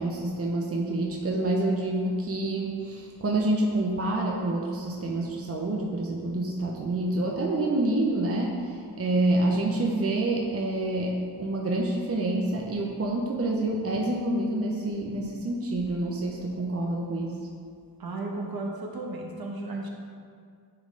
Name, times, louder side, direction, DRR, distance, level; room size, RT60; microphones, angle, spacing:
voice 1, 0.0-17.5, right 2 dB, 35° right, -1 dB, 0.8 m, -27 dB
voice 2, 18.0-19.9, right 2 dB, 55° right, 0 dB, 1.2 m, -34 dB
9.8 x 3.6 x 3.9 m, 2.2 s
cardioid pair, 55°, 43 cm